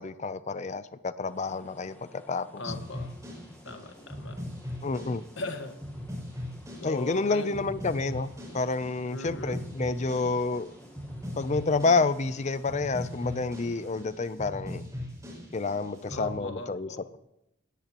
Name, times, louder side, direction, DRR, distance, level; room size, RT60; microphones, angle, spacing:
voice 1, 0.0-2.7 4.8-5.2 6.8-10.7 11.4-14.8 15.5-16.9, left 3 dB, 35° left, 0.5 m, -29 dB
sound 1, 1.2-14.1, left 1 dB, 10° left, 1.4 m, -55 dB
voice 2, 2.6-3.1 3.6-4.4 5.4-5.7 6.8-7.5 9.1-9.6 16.1-17.0, left 3 dB, 75° left, 1.5 m, -39 dB
sound 2, 2.7-16.4, left 1 dB, 15° right, 6.2 m, -40 dB
18.5 x 17.0 x 3.0 m
head